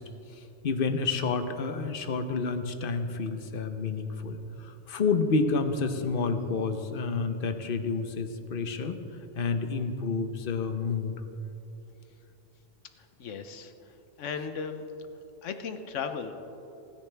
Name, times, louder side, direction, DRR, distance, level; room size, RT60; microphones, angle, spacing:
voice 1, 0.6-4.4 4.9-9.0 9.4-11.1, left 4 dB, 50° left, 8 dB, 1.0 m, -29 dB
voice 2, 13.0-14.8 15.4-16.3, left 6 dB, 80° left, 8 dB, 1.2 m, -37 dB
27.5 x 10.5 x 3.4 m, 3.0 s
omnidirectional pair, 1.2 m